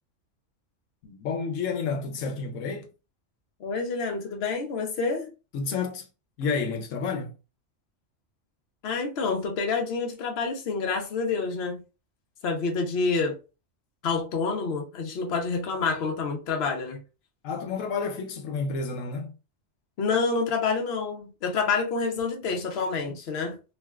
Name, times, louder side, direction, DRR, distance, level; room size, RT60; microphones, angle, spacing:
voice 1, 1.0-2.9 5.5-6.1 6.4-7.3 17.4-19.3, left 5 dB, 85° left, 1.0 m, -30 dB
voice 2, 3.6-5.3 8.8-11.8 12.4-13.4 14.0-17.0 20.0-23.5, left 4 dB, 60° left, 0.9 m, -28 dB
3.3 x 2.5 x 2.3 m
omnidirectional pair, 1.3 m